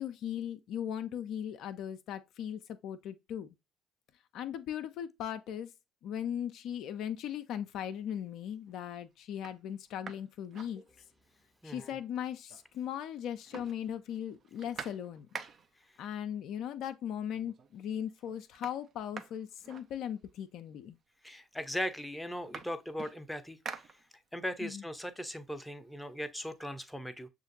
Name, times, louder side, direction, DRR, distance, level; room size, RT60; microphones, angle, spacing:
voice 1, 0.0-3.6 4.3-5.7 6.0-10.8 11.6-15.3 16.0-21.0 24.6-24.8, left 9 dB, 65° left, 0.3 m, -38 dB
sound 1, 7.9-8.4 8.9-9.0 9.3-11.4 11.7-11.8 12.1-12.9 13.2-15.9 16.8-16.9 17.3-17.8 18.1-20.5 21.3-21.4 21.7-24.5 24.9-26.7, right 6 dB, 50° right, 0.5 m, -48 dB
voice 2, 11.6-11.9 21.2-23.9 24.3-27.3, equal, 5° left, 0.6 m, -39 dB
6.2 x 2.5 x 2.6 m
hypercardioid pair, 60°, 0 cm